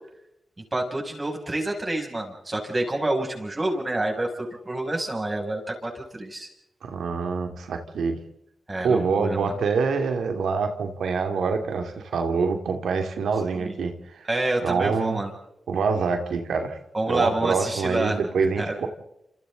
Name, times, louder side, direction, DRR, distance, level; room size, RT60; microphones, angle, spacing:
voice 1, 0.7-6.5 8.7-9.5 13.6-13.7 14.3-15.3 16.9-18.2 18.6-18.9, right 1 dB, 30° right, 1 dB, 7.2 m, -28 dB
voice 2, 6.8-8.2 8.8-14.3 14.6-15.2 15.7-16.8 17.1-18.9, right 5 dB, 85° right, 5 dB, 2.5 m, -25 dB
28.5 x 27.5 x 4.0 m, 0.83 s
cardioid pair, 50°, 0 cm